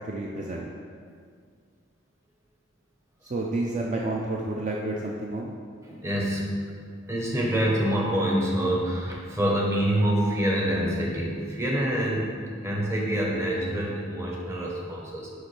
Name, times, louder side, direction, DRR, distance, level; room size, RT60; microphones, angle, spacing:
voice 1, 0.1-0.7 3.2-5.5, right 2 dB, 35° right, -2 dB, 0.4 m, -30 dB
voice 2, 5.9-6.6 7.1-15.3, equal, 15° right, -3 dB, 0.8 m, -26 dB
6.4 x 5.1 x 3.2 m, 2.1 s
head